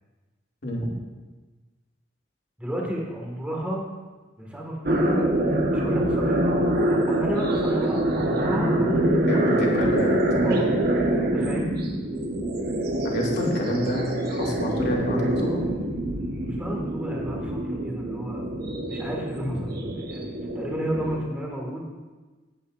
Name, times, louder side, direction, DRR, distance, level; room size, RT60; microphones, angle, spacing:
voice 1, 2.6-3.8 4.4-5.3 5.7-6.6 6.9-9.9 10.4-10.7 11.3-11.7 16.4-18.5 18.9-21.9, equal, 5° right, -2 dB, 1.9 m, -32 dB
sound 1, 4.9-21.2, right 1 dB, 55° right, 1.2 m, -25 dB
voice 2, 9.3-10.2 11.1-11.3 13.0-15.6 19.4-19.6, left 1 dB, 60° left, -4 dB, 2.6 m, -28 dB
16.5 x 8.5 x 2.6 m, 1.3 s
head